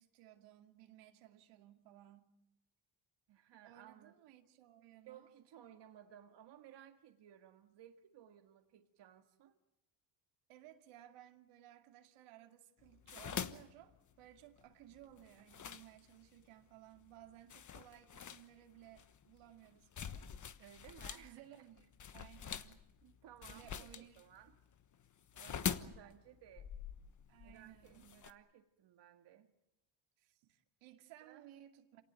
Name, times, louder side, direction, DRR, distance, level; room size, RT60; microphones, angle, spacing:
voice 1, 0.0-2.3 3.6-5.3 10.5-20.3 21.2-22.8 23.5-24.2 27.3-28.1 30.2-32.0, right 13 dB, 85° right, 2.4 m, -59 dB
voice 2, 3.3-4.2 4.9-9.6 20.6-21.4 23.0-24.6 25.3-26.7 27.4-29.5 31.2-31.4, right 10 dB, 55° right, 1.9 m, -59 dB
sound 1, 12.8-16.4 17.0-17.1 17.5-21.3 21.5-28.3, left 8 dB, 40° left, 1.2 m, -45 dB
27.5 x 18.0 x 9.1 m
cardioid pair, 120°, 48 cm